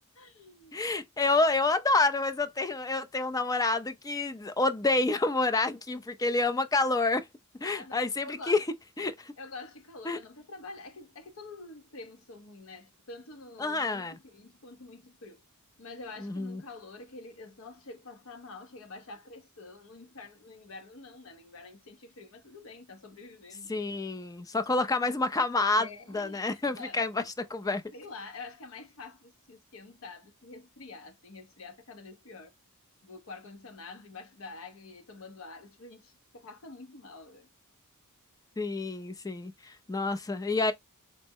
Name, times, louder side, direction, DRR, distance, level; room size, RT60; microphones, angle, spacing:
voice 1, 0.1-0.8 7.6-8.6 9.4-15.4 15.8-23.7 25.8-27.0 27.9-32.5 33.0-37.5, left 3 dB, 65° left, 0.7 m, -47 dB
voice 2, 0.7-7.2 7.6-8.6 9.0-9.3 10.1-10.2 13.6-14.2 16.2-16.6 23.7-25.9 26.1-27.8 38.6-40.7, left 3 dB, 15° left, 0.4 m, -28 dB
4.2 x 2.0 x 3.5 m
head